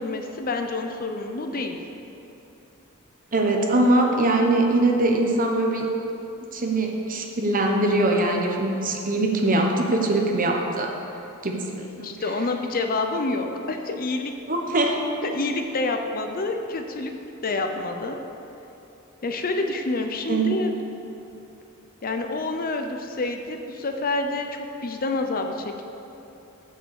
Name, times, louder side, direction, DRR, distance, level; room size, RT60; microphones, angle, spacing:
voice 1, 0.0-1.8 11.8-14.3 15.2-17.1 17.4-18.2 19.2-20.7 22.0-25.8, left 2 dB, 45° left, 5 dB, 0.7 m, -28 dB
voice 2, 3.3-5.9 6.5-10.9 11.4-12.1 14.5-15.0 20.3-20.5, right 2 dB, 40° right, 2 dB, 1.1 m, -22 dB
7.8 x 6.6 x 7.2 m, 2.9 s
head